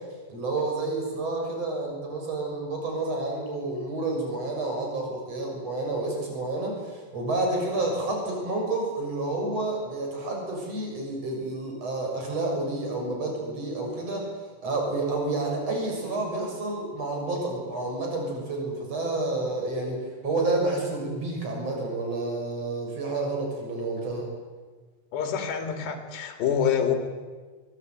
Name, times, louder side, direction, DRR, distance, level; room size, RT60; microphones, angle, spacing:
voice 1, 0.3-14.3 14.6-24.3, right 2 dB, 30° right, 0 dB, 7.6 m, -29 dB
voice 2, 25.1-27.0, left 8 dB, 65° left, 6 dB, 4.8 m, -26 dB
23.5 x 22.5 x 9.4 m, 1.4 s
omnidirectional pair, 5.5 m